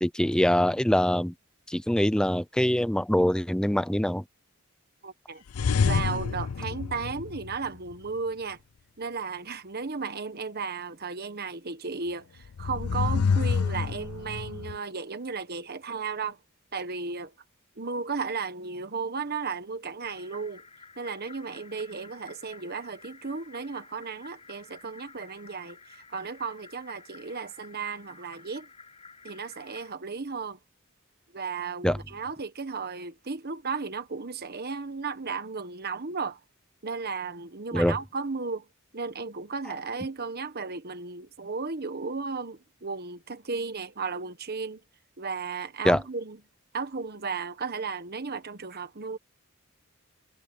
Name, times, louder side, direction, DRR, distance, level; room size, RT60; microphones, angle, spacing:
voice 1, 0.0-1.3 1.7-4.2 31.8-32.0 37.7-38.0 45.8-46.0, equal, 5° left, 0.5 m, -24 dB
voice 2, 5.0-5.4 5.8-8.6 9.0-16.4 16.7-17.3 17.8-20.6 21.0-28.7 29.2-30.6 31.3-36.4 36.8-38.6 38.9-44.8 45.2-46.4 46.7-49.2, right 4 dB, 45° right, 1.3 m, -34 dB
sound 1, 5.5-7.9 12.4-14.8, left 5 dB, 85° left, 0.5 m, -27 dB
sound 2, 20.0-29.9, left 4 dB, 30° left, 4.3 m, -51 dB
head